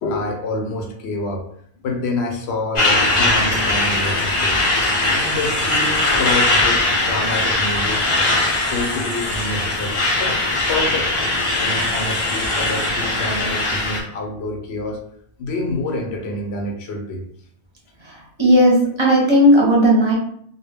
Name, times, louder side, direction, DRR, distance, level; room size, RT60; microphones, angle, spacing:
voice 1, 0.0-1.5 1.8-4.6 5.1-8.0 8.7-10.4 10.7-11.1 11.6-15.0 15.4-17.2, left 2 dB, 75° left, 2 dB, 0.8 m, -27 dB
Truck, 2.8-14.0, left 2 dB, 40° left, 0.5 m, -20 dB
voice 2, 18.0-20.1, equal, 30° right, -3 dB, 0.6 m, -15 dB
2.1 x 2.1 x 3.3 m, 0.66 s
omnidirectional pair, 1.1 m